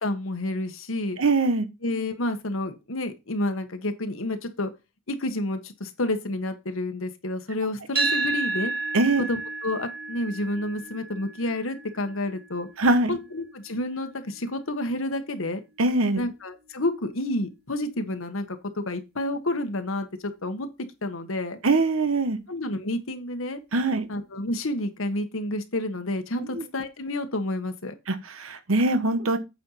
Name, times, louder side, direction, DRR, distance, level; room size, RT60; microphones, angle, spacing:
voice 1, 0.0-1.2 1.8-4.7 5.1-8.7 9.2-12.7 13.1-15.6 16.2-20.7 21.0-21.6 22.5-23.6 24.1-27.9, left 1 dB, 80° left, 1.4 m, -30 dB
voice 2, 1.2-1.7 8.9-9.3 12.8-13.2 15.8-16.2 21.6-22.4 23.7-24.1 26.4-26.6 28.1-29.4, right 2 dB, 85° right, 1.2 m, -22 dB
sound 1, 8.0-16.1, right 3 dB, 50° right, 3.7 m, -33 dB
8.6 x 4.5 x 5.7 m
head